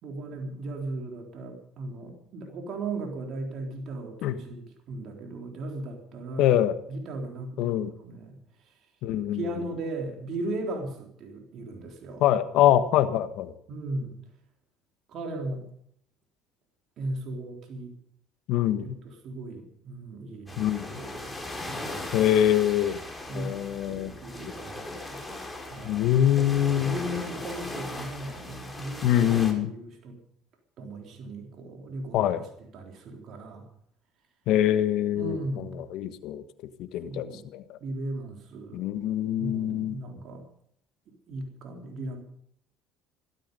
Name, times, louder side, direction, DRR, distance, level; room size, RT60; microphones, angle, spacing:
voice 1, 0.0-6.6 6.9-8.4 9.3-12.2 13.7-14.1 15.1-15.7 17.0-17.9 19.0-20.7 21.0-21.4 21.7-22.2 23.3-23.6 23.9-25.3 25.7-26.1 26.4-26.5 26.8-29.3 29.6-30.2 30.8-32.4 32.7-33.7 35.2-35.9 37.1-37.4 37.8-38.9 39.4-40.4 41.1-42.2, right 2 dB, 60° right, 2 dB, 3.8 m, -37 dB
voice 2, 6.4-6.7 7.6-7.9 9.0-9.5 12.2-13.5 18.5-18.9 20.6-20.9 22.1-23.0 23.3-24.1 25.8-27.0 29.0-29.7 32.1-32.4 34.5-35.6 35.9-36.4 36.8-37.3 37.5-37.8 38.7-40.0, left 11 dB, 70° left, 11 dB, 1.4 m, -24 dB
sound 1, 20.5-29.5, left 2 dB, 10° left, 5.3 m, -38 dB
17.0 x 13.0 x 5.4 m, 0.67 s
supercardioid pair, 85°, 0 cm